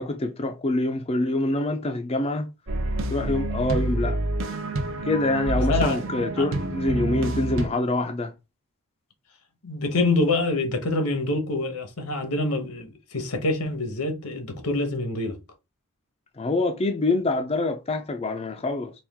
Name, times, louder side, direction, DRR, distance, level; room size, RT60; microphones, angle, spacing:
voice 1, 0.0-2.5 3.1-4.2 5.0-8.3 16.4-18.9, left 2 dB, 25° left, 0.4 m, -25 dB
sound 1, 2.7-7.7, right 2 dB, 60° right, 0.7 m, -27 dB
voice 2, 5.7-6.0 6.4-6.5 9.6-15.4, left 2 dB, 85° left, 1.1 m, -26 dB
4.3 x 2.4 x 3.5 m
head